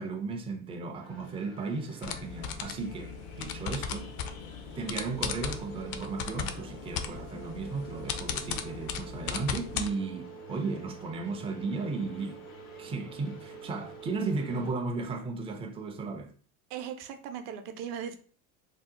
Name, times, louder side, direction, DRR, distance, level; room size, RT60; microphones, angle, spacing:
voice 1, 0.0-4.1 4.7-12.4 12.8-16.3, right 4 dB, 15° right, 0.4 m, -35 dB
sound 1, 1.0-14.7, right 4 dB, 80° left, 1.3 m, -47 dB
sound 2, 2.0-9.9, left 7 dB, 55° left, 0.5 m, -37 dB
voice 2, 16.7-18.2, right 8 dB, 65° right, 0.6 m, -38 dB
2.8 x 2.0 x 3.6 m
supercardioid pair, 100°, 42 cm